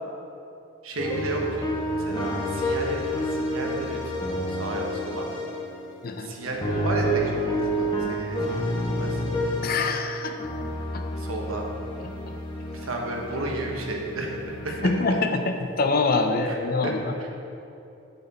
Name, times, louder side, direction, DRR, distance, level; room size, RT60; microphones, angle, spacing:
voice 1, 0.8-1.7 1.9-3.0 3.3-5.3 6.2-9.3 11.1-11.6 12.8-14.4 14.6-14.9 16.4-16.5 16.8-16.9 17.2-17.3, right 2 dB, 85° right, 0 dB, 1.2 m, -32 dB
sound 1, 1.0-5.9 6.4-10.1 10.4-15.2, equal, 20° left, 1.0 m, -29 dB
voice 2, 9.6-10.4 10.9-11.0 14.8-17.1, left 3 dB, 45° left, 5 dB, 0.5 m, -25 dB
8.0 x 6.8 x 4.2 m, 2.8 s
head